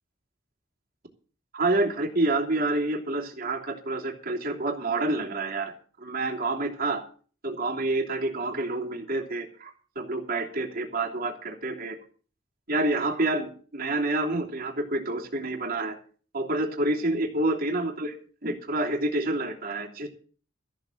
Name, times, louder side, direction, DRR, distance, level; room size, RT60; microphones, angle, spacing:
voice 1, 1.5-7.0 7.4-11.9 12.7-15.9 16.3-18.1 18.4-20.1, right 2 dB, 50° right, -1 dB, 3.1 m, -28 dB
14.5 x 7.4 x 7.9 m, 0.41 s
head